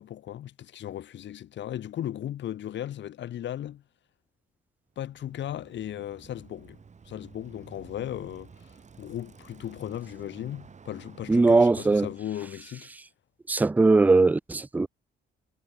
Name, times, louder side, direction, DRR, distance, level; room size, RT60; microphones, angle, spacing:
voice 1, 0.0-3.8 5.0-6.8 7.0-12.9, left 11 dB, 65° left, 1.3 m, -36 dB
Bicycle, 4.9-12.5, right 5 dB, 35° right, 3.1 m, -52 dB
voice 2, 11.3-12.1 13.5-14.9, right 3 dB, 10° right, 0.3 m, -20 dB
cardioid pair, 90°, 20 cm